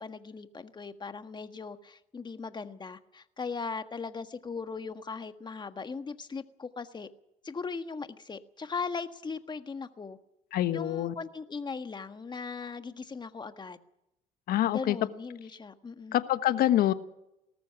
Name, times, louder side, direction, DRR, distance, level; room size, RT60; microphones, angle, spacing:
voice 1, 0.0-7.1 7.4-10.2 10.7-13.8 14.7-16.2, left 4 dB, 25° left, 9 dB, 1.5 m, -38 dB
voice 2, 10.5-11.1 14.5-15.0 16.1-16.9, left 13 dB, 65° left, 12 dB, 1.2 m, -25 dB
19.0 x 14.0 x 10.0 m, 0.87 s
supercardioid pair, 70°, 17 cm